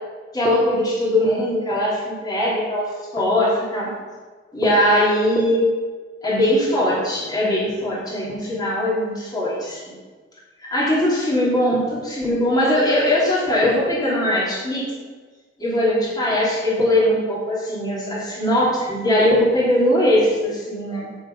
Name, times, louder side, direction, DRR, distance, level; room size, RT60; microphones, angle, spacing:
voice 1, 0.3-3.9 4.5-5.7 6.2-10.0 10.6-14.9 15.6-21.1, left 1 dB, 20° left, -7 dB, 3.2 m, -20 dB
8.4 x 7.6 x 5.5 m, 1.4 s
head